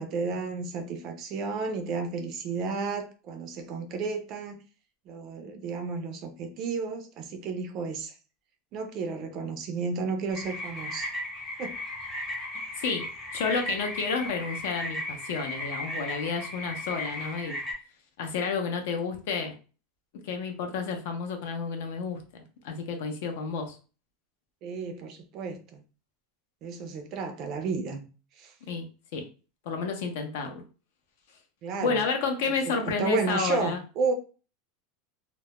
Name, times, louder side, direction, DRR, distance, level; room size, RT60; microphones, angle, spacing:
voice 1, 0.0-4.6 5.1-8.1 8.7-11.1 11.6-11.7 12.6-12.7 24.6-25.8 26.6-28.0 28.4-28.5 31.6-32.0 32.7-34.1, right 4 dB, 35° right, 0.4 m, -32 dB
sound 1, 10.3-17.7, left 1 dB, 10° left, 0.7 m, -36 dB
voice 2, 12.8-17.6 18.2-19.5 20.2-22.2 22.6-23.8 28.7-28.8 29.1-29.2 29.7-30.6 31.8-33.8, left 5 dB, 60° left, 0.6 m, -30 dB
2.2 x 2.0 x 2.8 m
supercardioid pair, 175°, 0 cm